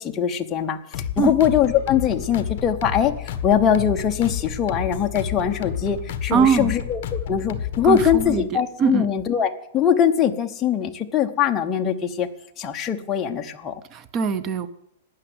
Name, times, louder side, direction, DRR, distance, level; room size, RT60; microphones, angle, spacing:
voice 1, 0.0-12.3 12.6-13.7, left 8 dB, 15° left, 3 dB, 0.9 m, -22 dB
sound 1, 0.9-8.4, left 9 dB, 45° left, 1.4 m, -31 dB
voice 2, 6.3-6.8 7.8-8.5 8.8-9.1 13.9-14.7, right 6 dB, 20° right, 14 dB, 0.6 m, -21 dB
13.0 x 9.0 x 9.3 m, 0.80 s
supercardioid pair, 175°, 0 cm